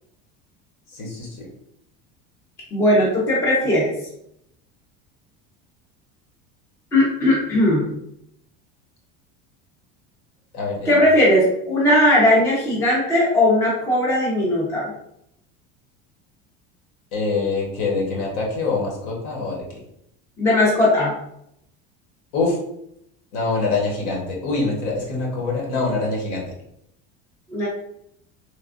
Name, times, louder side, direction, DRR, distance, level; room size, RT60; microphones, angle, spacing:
voice 1, 0.9-1.5 10.5-11.0 17.1-19.8 22.3-22.6 23.3-26.5, left 3 dB, 65° left, -2 dB, 1.1 m, -25 dB
voice 2, 2.7-3.9 6.9-8.0 10.9-14.9 20.4-21.1 27.5-27.7, left 1 dB, 10° left, -5 dB, 0.4 m, -18 dB
3.3 x 2.2 x 2.4 m, 0.75 s
cardioid pair, 175°, 29 cm